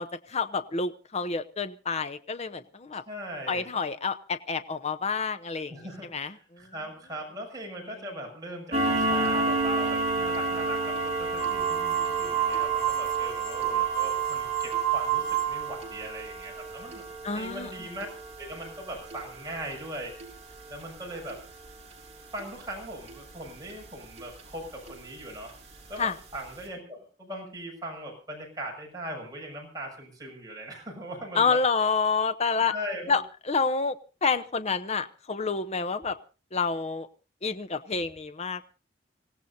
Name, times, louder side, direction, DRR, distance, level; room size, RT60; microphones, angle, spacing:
voice 1, 0.0-3.0 3.5-5.7 6.1-6.6 17.2-17.7 26.0-26.1 31.3-32.7 33.1-33.2 33.5-34.0 34.2-36.2 36.5-37.1 37.4-38.7, left 4 dB, 35° left, 9 dB, 0.8 m, -28 dB
voice 2, 3.0-3.7 5.7-17.1 17.3-18.1 18.4-20.2 20.7-21.4 22.3-25.5 25.9-31.6 32.7-33.2, right 1 dB, 20° right, -1 dB, 6.8 m, -40 dB
sound 1, 8.7-23.8 24.2-24.4 24.9-25.0 25.4-25.5 26.0-26.1 26.3-26.5, right 2 dB, 35° right, 6.4 m, -32 dB
sound 2, 11.4-15.8, right 12 dB, 5° left, 2.5 m, -28 dB
25.5 x 17.0 x 2.8 m, 0.35 s
head